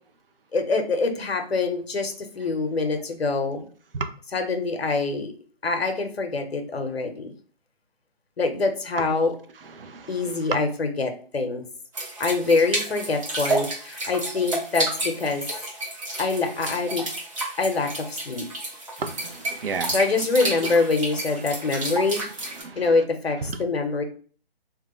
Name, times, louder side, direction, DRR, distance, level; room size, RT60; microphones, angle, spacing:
voice 1, 0.5-3.6 4.3-5.3 5.6-7.3 8.4-9.3 10.1-11.6 12.2-15.4 16.2-17.0 17.6-18.5 19.9-22.2 22.8-24.0, left 3 dB, 80° left, 5 dB, 0.7 m, -25 dB
voice 2, 9.8-10.2 10.5-10.6 19.0-20.0 20.6-20.7 22.6-22.9 23.4-23.6, right 4 dB, 65° right, 8 dB, 0.5 m, -31 dB
sound 1, 11.9-22.6, right 2 dB, 35° right, 0.9 m, -31 dB
2.2 x 2.1 x 3.0 m, 0.43 s
figure-of-eight pair, 155°, 31 cm